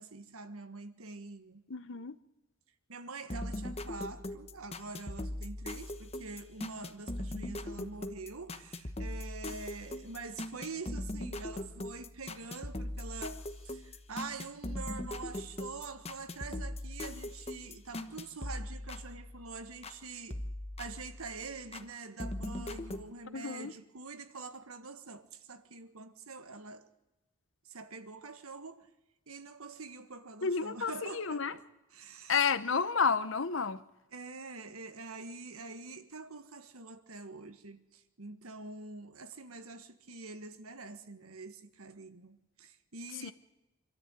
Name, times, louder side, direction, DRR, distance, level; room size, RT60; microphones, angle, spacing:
voice 1, 0.0-1.6 2.9-20.4 20.8-26.9 27.7-28.9 29.3-31.6 31.9-32.4 34.1-43.3, right 3 dB, 90° right, 1.7 m, -45 dB
voice 2, 1.7-2.1 23.3-23.7 30.4-31.5 32.3-33.8 43.2-43.3, left 5 dB, 60° left, 0.9 m, -31 dB
sound 1, 3.3-20.0 20.3-21.9 22.2-23.0, left 1 dB, 30° left, 1.1 m, -40 dB
25.5 x 13.0 x 9.1 m
head